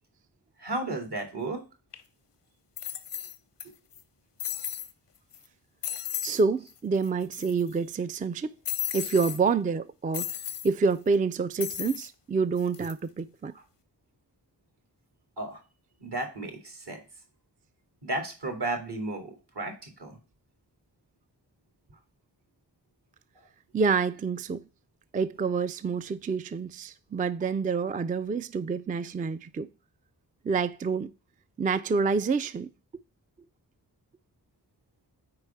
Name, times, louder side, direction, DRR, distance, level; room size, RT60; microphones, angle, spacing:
voice 1, 0.6-1.6 3.6-3.7 6.6-6.7 9.2-9.3 13.5-13.6 15.4-15.6 16.0-17.0 18.0-20.2 27.4-27.5, right 2 dB, 70° right, 2.3 m, -34 dB
sound 1, 1.9-2.0 2.8-3.6 3.9-4.0 4.4-4.9 5.3-5.5 5.8-6.4 6.7-6.8 7.0-7.7 8.6-9.4 10.1-10.7 11.6-12.1 12.6-12.9, left 10 dB, 80° left, 0.8 m, -34 dB
voice 2, 6.2-8.5 8.9-10.4 10.6-13.5 23.7-24.6 25.1-29.7 30.4-31.1 31.6-32.7, right 5 dB, 20° right, 0.3 m, -27 dB
4.7 x 4.6 x 5.7 m
cardioid pair, 40°, 41 cm